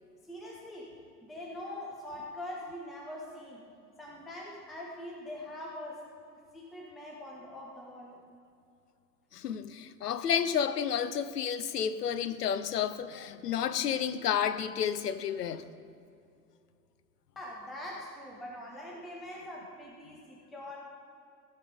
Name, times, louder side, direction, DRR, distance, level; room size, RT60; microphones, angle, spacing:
voice 1, 0.2-0.9 1.2-3.7 4.0-6.1 6.3-8.2 17.4-20.8, left 1 dB, ahead, 0.3 m, -43 dB
voice 2, 9.3-15.6, left 8 dB, 70° left, 0.7 m, -31 dB
15.5 x 5.5 x 5.1 m
figure-of-eight pair, 95°, 49 cm